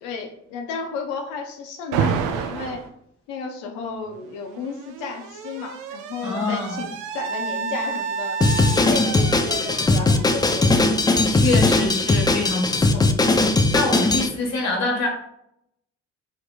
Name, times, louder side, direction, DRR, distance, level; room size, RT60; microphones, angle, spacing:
voice 1, 0.0-2.9 3.3-8.4 8.7-10.9, left 5 dB, 75° left, 4 dB, 0.7 m, -33 dB
Alarm, 1.9-2.9 4.1-11.8, right 6 dB, 60° right, 0.5 m, -30 dB
voice 2, 6.2-6.8 11.2-15.1, left 3 dB, 50° left, 0 dB, 1.4 m, -26 dB
Drum kit, 8.4-14.3, left 2 dB, 10° left, 0.4 m, -19 dB
4.7 x 2.9 x 2.3 m, 0.75 s
hypercardioid pair, 45°, 35 cm